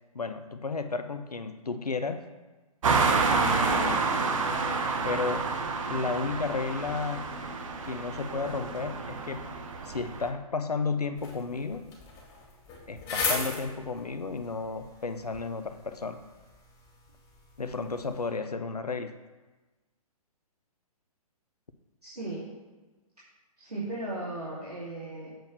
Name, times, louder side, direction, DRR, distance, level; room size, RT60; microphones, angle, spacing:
voice 1, 0.1-2.2 3.3-4.1 5.0-5.5 5.9-7.3 7.9-9.5 9.8-11.9 12.9-16.2 17.6-19.1, left 4 dB, 90° left, 10 dB, 0.7 m, -33 dB
sound 1, 2.8-10.3, right 4 dB, 60° right, 1.3 m, -29 dB
sound 2, 11.2-18.3, left 4 dB, 30° left, 2.5 m, -38 dB
voice 2, 22.0-22.5 23.6-25.3, right 2 dB, 90° right, -9 dB, 2.7 m, -36 dB
7.7 x 4.6 x 6.7 m, 1.2 s
figure-of-eight pair, 130°, 19 cm